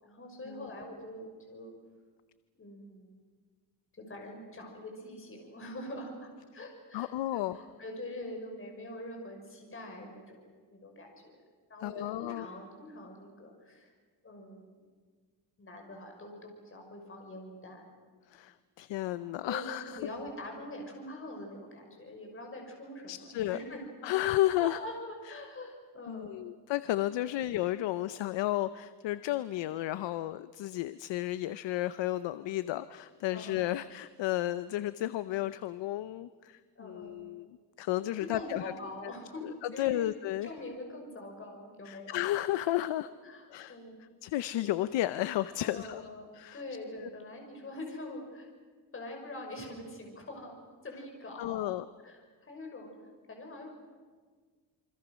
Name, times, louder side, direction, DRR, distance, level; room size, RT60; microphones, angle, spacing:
voice 1, 0.0-1.7 2.6-3.2 3.9-11.4 11.7-13.9 14.2-14.9 15.6-17.9 18.2-18.4 19.4-23.8 24.1-24.2 24.6-26.4 27.2-27.4 33.3-33.7 36.8-37.4 38.2-39.4 39.7-40.1 40.4-42.2 43.0-44.0 45.6-48.5 48.9-50.5 50.8-51.6 52.0-52.9 53.3-53.7, left 1 dB, 30° left, 2 dB, 6.1 m, -44 dB
voice 2, 6.9-7.6 11.8-12.5 18.3-20.0 23.1-23.6 24.0-24.8 26.1-37.5 37.8-38.6 39.8-40.5 41.9-43.1 43.5-43.8 44.2-46.1 46.3-46.6 51.4-51.8, left 14 dB, 90° left, 14 dB, 0.8 m, -32 dB
27.5 x 24.5 x 6.3 m, 1.5 s
cardioid pair, 130°, 42 cm